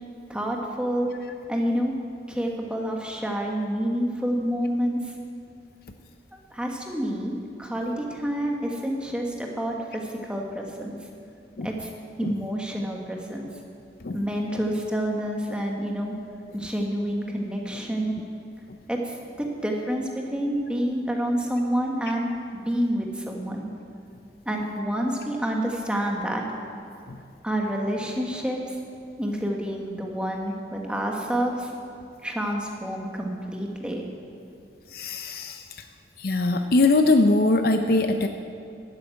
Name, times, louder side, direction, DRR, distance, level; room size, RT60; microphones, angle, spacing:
voice 1, 0.3-1.1 1.5-1.9 2.3-5.1 6.5-7.3 7.6-11.0 11.6-11.9 12.2-13.5 14.1-16.1 16.5-18.1 18.9-23.7 24.4-26.4 27.4-28.8 29.2-31.7 32.2-34.0, equal, 5° right, 0 dB, 1.4 m, -28 dB
voice 2, 34.9-35.6 36.2-38.3, left 2 dB, 55° left, 7 dB, 0.6 m, -21 dB
12.0 x 8.3 x 9.1 m, 2.4 s
head